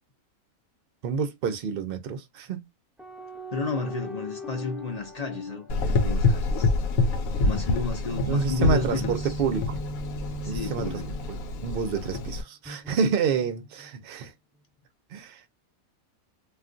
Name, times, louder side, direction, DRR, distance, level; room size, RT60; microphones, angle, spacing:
voice 1, 1.0-2.7 8.3-9.8 10.5-10.9 11.3-14.3 15.1-15.5, right 6 dB, 55° right, 0.6 m, -28 dB
sound 1, 3.0-6.7 8.1-11.8 12.6-13.9, equal, ahead, 0.9 m, -39 dB
voice 2, 3.5-6.7 7.4-9.4 10.4-11.3, left 4 dB, 60° left, 0.4 m, -32 dB
Gurgling / Engine, 5.7-12.4, left 3 dB, 75° left, 1.0 m, -27 dB
2.4 x 2.2 x 3.7 m
omnidirectional pair, 1.5 m